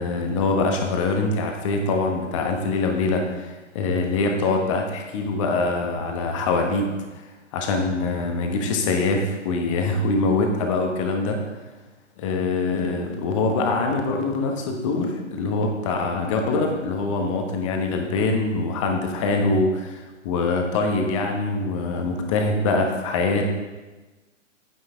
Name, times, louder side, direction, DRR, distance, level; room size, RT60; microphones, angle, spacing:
voice 1, 0.0-6.8 7.5-11.4 12.2-23.4, left 3 dB, 25° left, 3 dB, 1.2 m, -24 dB
9.6 x 9.5 x 3.5 m, 1.2 s
figure-of-eight pair, 125°, 38 cm